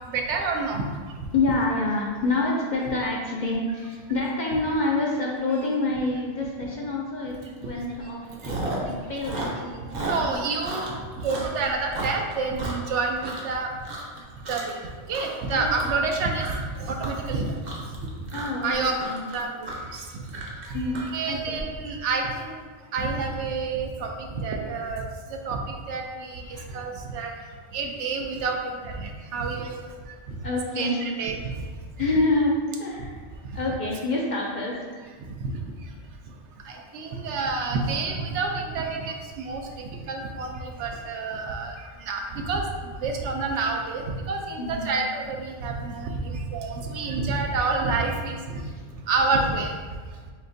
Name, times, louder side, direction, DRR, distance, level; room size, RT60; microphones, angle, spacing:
voice 1, 0.1-0.8 10.0-10.9 11.2-13.7 14.5-16.4 16.8-17.6 18.6-18.9 19.3-20.2 20.7-20.8 21.1-22.6 22.9-25.0 25.3-27.3 27.7-28.6 28.8-29.8 30.3-30.4 30.8-31.5 36.6-48.6 49.1-49.7, right 4 dB, 75° right, 2 dB, 0.8 m, -28 dB
voice 2, 1.3-10.5 15.5-16.0 18.3-19.3 20.7-21.5 26.6-26.8 30.4-31.0 32.0-33.1 33.5-34.8 44.6-45.0 48.6-48.8, left 2 dB, 50° left, -3 dB, 0.6 m, -27 dB
Chewing mastication, 7.4-7.6 7.9-8.9 9.2-13.5 13.8-14.2 14.4-14.8 15.1-21.6, right 2 dB, 45° right, 0.7 m, -34 dB
6.1 x 2.5 x 2.6 m, 1.5 s
omnidirectional pair, 1.2 m